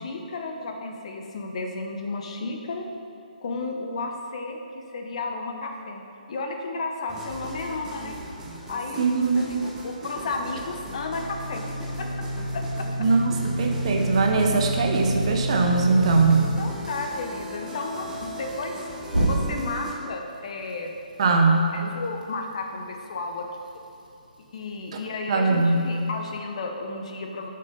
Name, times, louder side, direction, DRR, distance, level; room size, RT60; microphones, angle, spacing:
voice 1, 0.0-2.9 3.4-6.0 6.3-8.2 8.7-9.1 9.3-12.3 12.5-13.1 16.0-18.8 19.2-21.0 21.7-23.4 24.4-27.5, left 3 dB, 45° left, 4 dB, 0.9 m, -33 dB
sound 1, 7.1-19.9, equal, 10° right, 1.0 m, -39 dB
voice 2, 9.0-9.5 13.0-16.5 21.2-21.7 25.3-25.8, right 3 dB, 40° right, 2 dB, 0.9 m, -21 dB
sound 2, 10.8-16.6 19.1-19.8, right 1 dB, 90° right, 2.0 m, -28 dB
7.8 x 5.7 x 5.1 m, 2.5 s
figure-of-eight pair, 135°, 5 cm